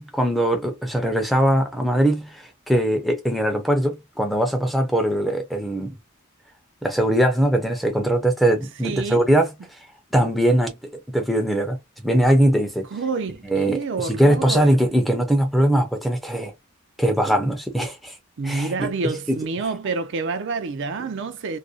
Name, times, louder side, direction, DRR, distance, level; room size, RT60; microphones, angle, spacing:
voice 1, 0.0-5.9 6.8-9.5 10.1-10.8 11.1-11.8 12.0-12.9 13.5-16.5 17.0-18.1 18.4-18.9 19.3-19.4, right 1 dB, ahead, 0.5 m, -21 dB
voice 2, 8.8-9.2 12.9-14.9 18.4-21.6, right 4 dB, 55° right, 0.4 m, -28 dB
2.6 x 2.1 x 2.4 m
head